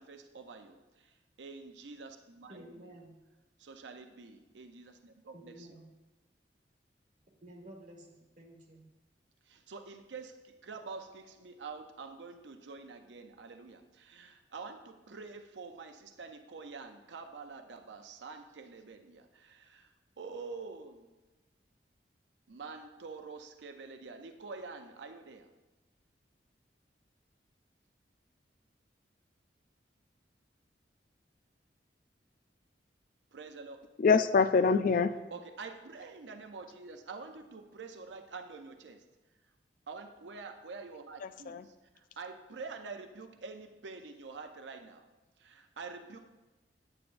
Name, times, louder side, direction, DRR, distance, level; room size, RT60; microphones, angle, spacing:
voice 1, 0.0-2.9 3.6-5.7 9.5-19.9 20.2-21.2 22.5-25.5 33.3-33.8 35.3-39.0 39.9-41.6 41.9-45.1 45.4-46.3, right 4 dB, 85° right, 0.6 m, -47 dB
voice 2, 2.5-3.1 5.3-5.9 7.4-8.9, right 1 dB, 45° right, 1.6 m, -52 dB
voice 3, 34.0-35.1 41.2-41.7, left 5 dB, 50° left, 0.3 m, -25 dB
9.7 x 8.5 x 2.6 m
head